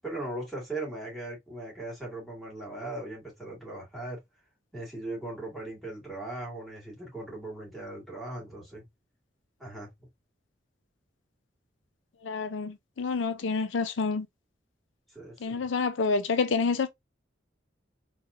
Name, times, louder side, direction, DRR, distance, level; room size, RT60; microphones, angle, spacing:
voice 1, 0.0-4.2 4.7-8.8 9.6-9.9 15.1-15.7, right 2 dB, ahead, 2.4 m, -38 dB
voice 2, 12.2-14.3 15.4-16.9, left 4 dB, 85° left, 0.5 m, -28 dB
4.1 x 3.1 x 2.5 m
head